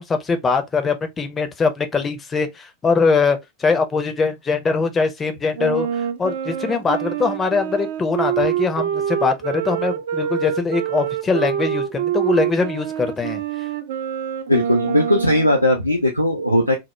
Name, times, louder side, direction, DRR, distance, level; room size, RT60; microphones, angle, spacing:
voice 1, 0.0-13.4, left 4 dB, 20° left, 0.4 m, -22 dB
Wind instrument woodwind instrument, 5.5-15.6, right 9 dB, 55° right, 0.3 m, -25 dB
voice 2, 14.5-16.8, left 1 dB, 85° left, 0.4 m, -18 dB
2.1 x 2.0 x 2.8 m
figure-of-eight pair, 90°, 0 cm